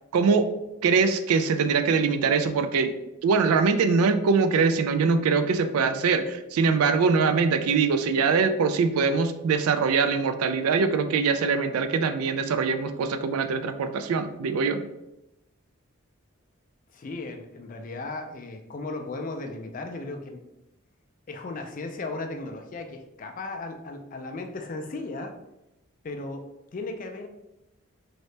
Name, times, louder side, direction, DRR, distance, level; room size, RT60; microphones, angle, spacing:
voice 1, 0.1-0.5 0.8-2.9 3.2-14.8, right 5 dB, 85° right, 9 dB, 0.3 m, -23 dB
voice 2, 16.9-20.4 21.3-25.3 26.0-27.3, left 2 dB, 35° left, 5 dB, 0.3 m, -36 dB
3.1 x 2.8 x 3.2 m, 0.93 s
head